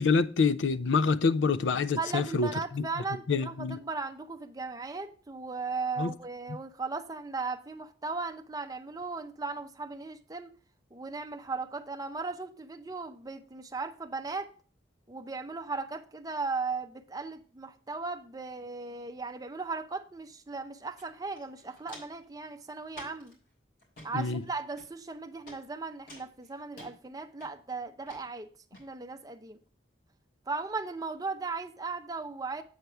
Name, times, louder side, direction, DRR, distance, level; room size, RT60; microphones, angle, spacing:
voice 1, 0.0-2.5 2.7-2.8 3.3-3.8 6.0-6.1 24.1-24.4, left 4 dB, 80° left, 0.5 m, -26 dB
voice 2, 2.0-10.6 10.9-14.5 15.1-23.4 24.0-28.5 28.8-29.6 30.5-32.6, right 4 dB, 20° right, 0.5 m, -37 dB
Walk footsteps, 21.0-21.1 21.3-22.2 22.9-23.3 23.8-24.1 24.8-25.1 25.5-25.6 26.1-26.9 27.4-27.7 28.1-28.2 28.7-28.8, equal, 50° left, 3.7 m, -49 dB
8.0 x 4.7 x 5.6 m
head